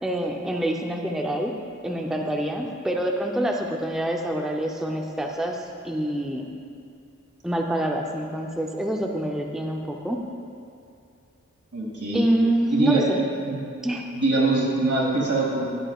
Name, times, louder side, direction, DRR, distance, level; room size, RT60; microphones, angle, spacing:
voice 1, 0.0-1.5 1.8-6.5 7.4-10.2 12.1-13.2 13.8-14.1, right 1 dB, ahead, 1 dB, 0.7 m, -26 dB
voice 2, 11.7-12.2 12.7-13.0 13.4-13.6 14.1-15.7, right 3 dB, 75° right, -5 dB, 2.5 m, -23 dB
13.5 x 10.0 x 2.4 m, 2.5 s
wide cardioid pair, 70°, 30 cm